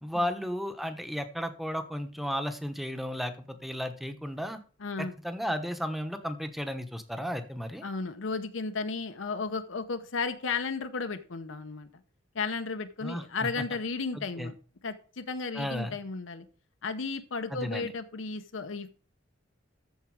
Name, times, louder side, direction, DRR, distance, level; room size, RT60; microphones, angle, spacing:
voice 1, 0.0-4.6 5.0-7.8 13.0-13.6 14.1-14.5 15.5-16.0 17.5-17.9, equal, ahead, 8 dB, 1.0 m, -34 dB
voice 2, 4.8-5.1 7.8-11.9 12.3-14.5 14.8-16.5 16.8-18.9, left 4 dB, 80° left, 8 dB, 0.8 m, -34 dB
13.5 x 4.8 x 4.8 m, 0.40 s
head